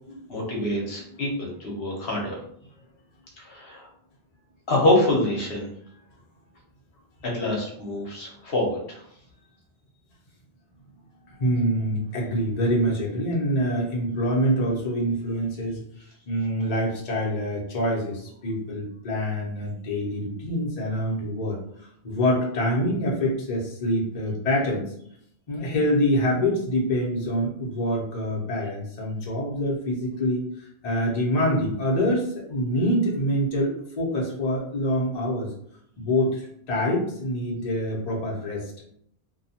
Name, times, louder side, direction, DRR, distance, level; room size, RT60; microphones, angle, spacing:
voice 1, 0.3-2.3 3.4-3.9 4.7-5.7 7.3-9.0, left 1 dB, 70° left, -2 dB, 0.9 m, -25 dB
voice 2, 11.4-15.8 16.3-24.8 25.5-35.5 36.0-38.8, equal, 45° left, -3 dB, 0.7 m, -25 dB
2.7 x 2.2 x 2.7 m, 0.68 s
omnidirectional pair, 1.0 m